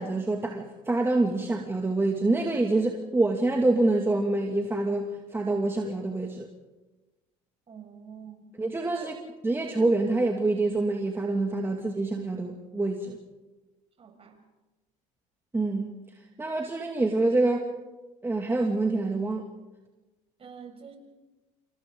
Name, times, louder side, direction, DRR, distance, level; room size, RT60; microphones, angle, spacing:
voice 1, 0.0-6.5 8.6-9.2 9.4-13.2 15.5-15.9 16.4-17.7 18.2-19.5, right 2 dB, 15° right, 1 dB, 2.4 m, -26 dB
voice 2, 7.7-8.5 8.9-9.1 14.0-14.4 20.4-21.0, right 7 dB, 40° right, 4 dB, 6.1 m, -46 dB
28.5 x 27.5 x 3.9 m, 1.1 s
supercardioid pair, 90°, 16 cm